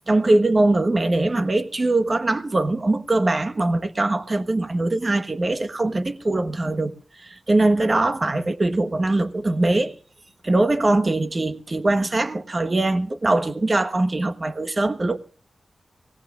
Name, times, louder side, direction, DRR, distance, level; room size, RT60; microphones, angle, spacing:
voice 1, 0.1-6.9 7.2-9.9 10.4-15.2, right 2 dB, 35° right, 1.3 m, -21 dB
24.5 x 18.0 x 2.5 m
wide cardioid pair, 100°, 0 cm